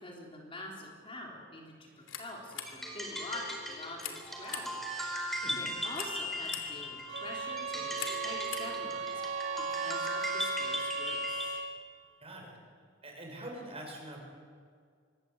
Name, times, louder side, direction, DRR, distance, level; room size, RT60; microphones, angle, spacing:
voice 1, 0.0-4.8 5.5-11.6, left 1 dB, 30° left, -1 dB, 3.9 m, -46 dB
sound 1, 1.9-9.4, left 8 dB, 80° left, 2.9 m, -47 dB
sound 2, 2.7-11.7, equal, ahead, 4.2 m, -38 dB
sound 3, 7.1-11.8, right 5 dB, 70° right, 1.6 m, -37 dB
voice 2, 12.2-12.6 13.0-14.2, right 1 dB, 30° right, 1 dB, 6.6 m, -44 dB
24.5 x 20.0 x 8.2 m, 2.1 s
head